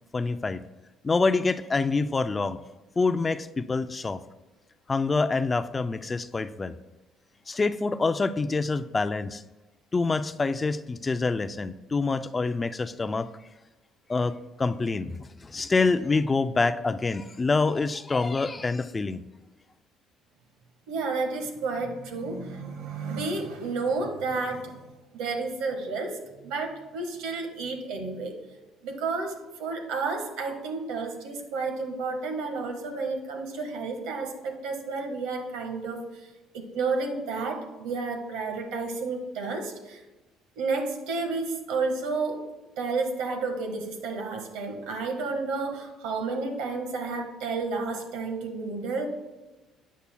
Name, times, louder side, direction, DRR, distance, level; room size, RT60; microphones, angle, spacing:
voice 1, 0.1-0.6 1.0-2.6 3.0-4.2 4.9-6.7 7.5-9.4 9.9-13.3 14.1-19.2, left 3 dB, 20° left, 12 dB, 0.3 m, -26 dB
voice 2, 20.9-24.8 25.1-28.3 28.8-36.0 36.5-40.0 40.6-42.4 42.8-49.1, right 4 dB, 90° right, 4 dB, 1.5 m, -31 dB
12.5 x 8.3 x 2.2 m, 1.1 s
cardioid pair, 130°, 0 cm